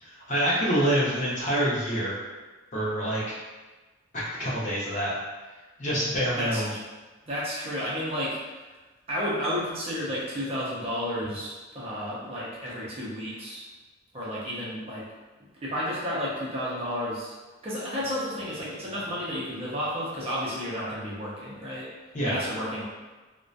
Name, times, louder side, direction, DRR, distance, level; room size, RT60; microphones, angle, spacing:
voice 1, 0.0-2.2 2.7-3.2 4.1-5.2 5.8-6.7 22.1-22.4, equal, 35° left, -7 dB, 0.6 m, -26 dB
voice 2, 7.3-8.4 9.1-13.6 14.1-15.0 15.6-17.3 17.6-21.9 22.2-22.8, equal, 30° right, -7 dB, 0.5 m, -32 dB
2.4 x 2.1 x 2.5 m, 1.3 s
head